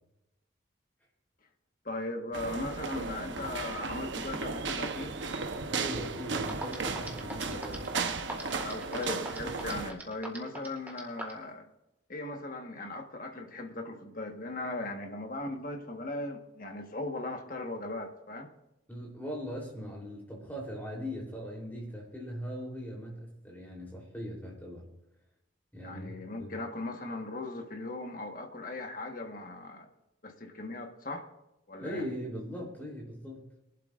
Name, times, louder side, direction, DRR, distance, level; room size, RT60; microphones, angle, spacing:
voice 1, 1.8-5.1 8.6-11.7 12.1-18.5 25.8-29.9 30.2-31.2 31.7-32.0, left 2 dB, 45° left, 1.5 m, -38 dB
sound 1, 2.3-9.9, right 4 dB, 70° right, 1.0 m, -35 dB
voice 2, 5.7-7.9 18.9-24.9 25.7-26.1 26.4-26.6 31.8-33.5, equal, 10° left, 3.5 m, -40 dB
sound 2, 6.5-11.4, right 1 dB, 10° right, 1.8 m, -40 dB
23.0 x 11.5 x 2.6 m
head